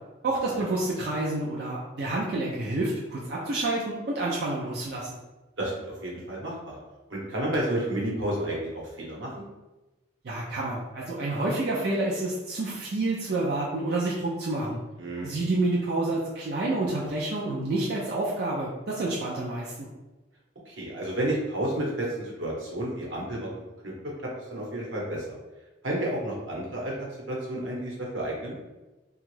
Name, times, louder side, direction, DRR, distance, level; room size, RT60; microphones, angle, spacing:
voice 1, 0.2-5.1 10.2-14.8 15.2-19.9, right 2 dB, 55° right, -4 dB, 0.4 m, -28 dB
voice 2, 5.6-6.8 7.1-9.3 15.0-15.3 20.7-23.5 23.8-23.9 24.5-25.2 25.8-28.5, right 1 dB, 85° right, -3 dB, 1.0 m, -31 dB
2.9 x 2.3 x 3.1 m, 1.1 s
head